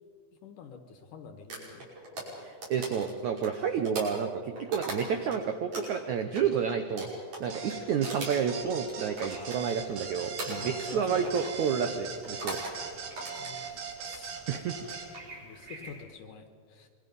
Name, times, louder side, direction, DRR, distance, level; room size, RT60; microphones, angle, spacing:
voice 1, 0.3-1.9 7.9-8.2 10.6-11.5 13.4-14.4 15.4-16.9, left 6 dB, 65° left, 6 dB, 2.3 m, -47 dB
sound 1, 1.5-5.4 5.7-10.0 10.4-11.0 11.3-11.6 12.2-12.8 13.1-14.2 14.8-15.2, right 1 dB, 50° right, 7.1 m, -40 dB
voice 2, 2.4-7.1 7.4-12.6 14.5-14.8, right 7 dB, 85° right, 7 dB, 1.6 m, -30 dB
sound 2, 7.5-15.1, right 6 dB, 65° right, 3.9 m, -40 dB
sound 3, 9.1-16.0, right 1 dB, 20° right, 4.5 m, -53 dB
26.5 x 22.5 x 5.4 m, 2.1 s
omnidirectional pair, 4.8 m